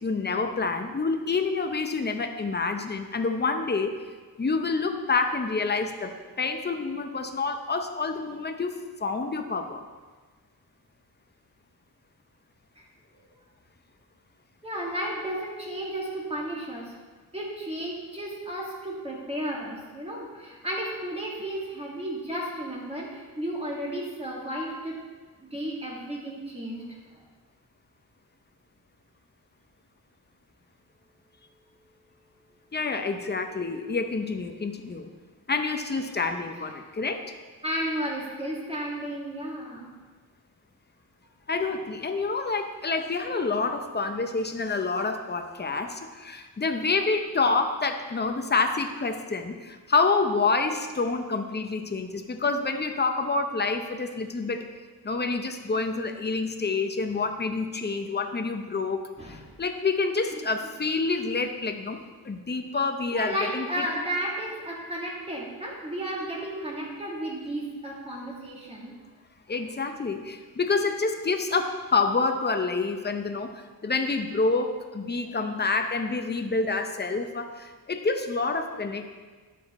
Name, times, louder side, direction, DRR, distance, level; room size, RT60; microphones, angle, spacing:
voice 1, 0.0-4.0 4.4-8.7 9.0-9.8 32.7-35.1 35.5-37.2 41.5-54.7 55.0-63.9 69.5-79.1, left 4 dB, 25° left, 6 dB, 0.7 m, -28 dB
voice 2, 14.6-16.9 17.3-25.0 25.5-26.8 27.1-27.2 31.6-32.1 32.5-32.6 37.6-39.9 59.2-59.5 60.3-60.5 63.1-68.9, right 1 dB, 15° right, -3 dB, 1.8 m, -33 dB
9.9 x 7.4 x 4.2 m, 1.4 s
wide cardioid pair, 155°, 38 cm